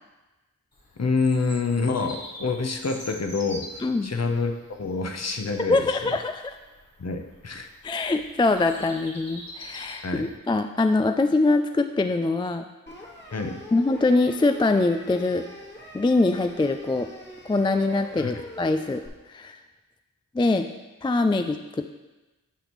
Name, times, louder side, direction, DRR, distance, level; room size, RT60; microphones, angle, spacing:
Bird vocalization bird call bird song, 0.7-10.3, equal, 70° left, 1.7 m, -45 dB
voice 1, 1.0-4.5 4.8-5.9 7.0-7.7 10.0-10.3 13.3-13.6 18.2-18.4, left 4 dB, 45° left, 4 dB, 0.8 m, -27 dB
voice 2, 3.8-4.1 5.7-6.6 7.8-12.7 13.7-15.5 15.9-17.1 17.5-19.0 19.3-19.6 20.3-20.7 21.0-21.9, left 3 dB, 15° left, 7 dB, 0.3 m, -23 dB
sound 1, 12.9-19.1, left 1 dB, 30° left, 1.5 m, -43 dB
10.0 x 5.2 x 3.1 m, 1.1 s
wide cardioid pair, 45°, 36 cm